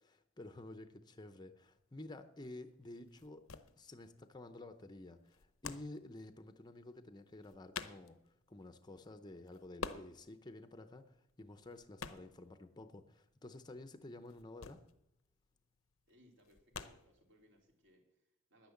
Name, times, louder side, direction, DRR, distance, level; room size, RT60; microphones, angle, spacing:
voice 1, 0.0-3.4 3.8-14.8, left 2 dB, 20° left, 9 dB, 0.7 m, -52 dB
sound 1, 1.7-17.9, left 6 dB, 75° left, 0.8 m, -51 dB
voice 2, 16.1-18.7, equal, 60° right, 2 dB, 3.0 m, -68 dB
10.0 x 10.0 x 7.1 m, 0.81 s
head